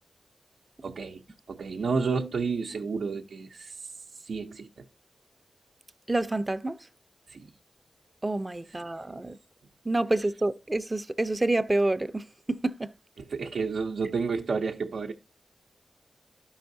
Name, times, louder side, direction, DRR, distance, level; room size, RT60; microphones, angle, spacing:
voice 1, 0.8-1.2 1.5-4.8 7.3-7.5 13.2-15.1, right 4 dB, 80° right, 0.6 m, -31 dB
voice 2, 6.1-6.8 8.2-9.4 9.9-12.9, right 2 dB, 20° right, 0.4 m, -28 dB
13.0 x 5.5 x 2.6 m
wide cardioid pair, 85°, 0 cm